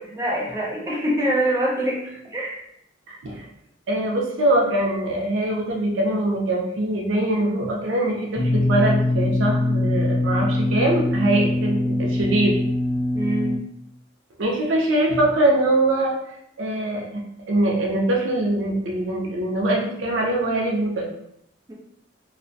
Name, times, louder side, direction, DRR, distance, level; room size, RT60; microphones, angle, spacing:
voice 1, 0.2-2.0 2.2-2.6 13.1-13.5 21.7-21.8, right 1 dB, 15° right, -4 dB, 0.5 m, -24 dB
voice 2, 3.1-3.5 3.9-12.5 14.4-16.1 16.6-21.0, right 1 dB, 75° right, -1 dB, 0.5 m, -22 dB
sound 1, 8.3-13.6, left 2 dB, 25° left, 0.8 m, -22 dB
2.5 x 2.1 x 2.5 m, 0.75 s
head